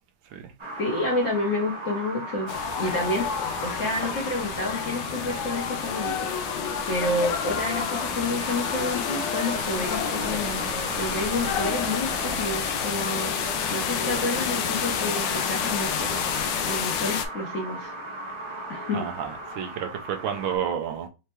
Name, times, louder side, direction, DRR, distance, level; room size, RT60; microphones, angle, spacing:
sound 1, 0.6-20.6, right 1 dB, 30° right, 0.5 m, -37 dB
voice 1, 0.8-3.3 3.6-6.3 6.9-10.6 10.9-13.3 13.7-16.2 16.7-17.9 18.7-19.1, left 2 dB, 45° left, 1.3 m, -29 dB
sound 2, 2.5-17.2, left 8 dB, 75° left, 1.1 m, -29 dB
sound 3, 9.5-16.7, right 3 dB, 60° right, 1.2 m, -39 dB
voice 2, 18.9-21.1, right 8 dB, 75° right, 1.5 m, -31 dB
4.5 x 2.8 x 3.1 m
omnidirectional pair, 2.2 m